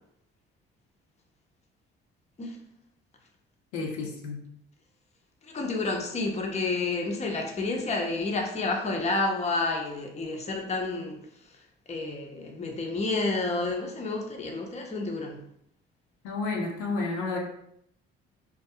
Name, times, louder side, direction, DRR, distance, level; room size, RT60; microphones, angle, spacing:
voice 1, 3.7-4.4 16.2-17.4, left 3 dB, 70° left, 0 dB, 0.6 m, -31 dB
voice 2, 5.4-11.2 11.9-15.4, left 3 dB, 20° left, 1 dB, 0.6 m, -30 dB
2.3 x 2.3 x 2.7 m, 0.73 s
hypercardioid pair, 45°, 31 cm